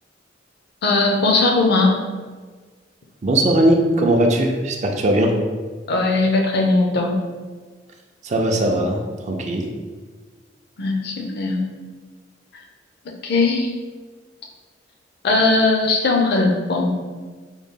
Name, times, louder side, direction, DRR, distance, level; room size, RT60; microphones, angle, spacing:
voice 1, 0.8-2.0 5.9-7.2 10.8-11.6 13.1-13.7 15.2-16.9, left 3 dB, 60° left, 2 dB, 0.5 m, -19 dB
voice 2, 3.2-5.3 8.2-9.0 9.2-9.7, right 1 dB, 40° right, 2 dB, 0.4 m, -19 dB
3.7 x 2.0 x 3.6 m, 1.4 s
head